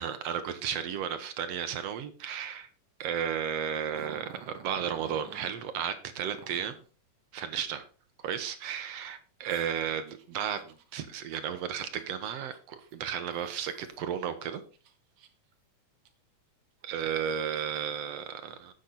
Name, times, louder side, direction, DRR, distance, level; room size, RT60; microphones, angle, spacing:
voice 1, 0.0-2.7 3.0-6.8 7.3-7.9 8.2-14.6 16.8-18.7, right 8 dB, 65° right, 10 dB, 1.9 m, -34 dB
Growling, 3.9-5.6 6.3-6.9 9.5-14.3 14.7-15.5 16.1-16.2 16.8-17.8, right 8 dB, 80° right, 2.8 m, -51 dB
10.0 x 8.3 x 4.2 m, 0.36 s
omnidirectional pair, 3.7 m